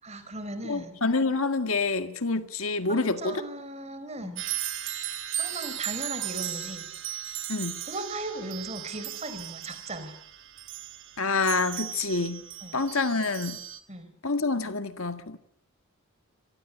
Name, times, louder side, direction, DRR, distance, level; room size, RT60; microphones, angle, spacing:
voice 1, 0.0-1.0 2.9-4.5 5.4-6.9 7.8-10.1 12.6-12.8 13.9-14.2, right 2 dB, 30° right, 4.6 m, -37 dB
voice 2, 0.7-3.4 4.2-4.3 7.5-7.8 11.2-12.4 12.7-13.6 14.2-15.4, left 3 dB, 65° left, 1.8 m, -27 dB
sound 1, 4.4-13.8, right 12 dB, 55° right, 2.6 m, -36 dB
27.0 x 19.5 x 9.8 m
head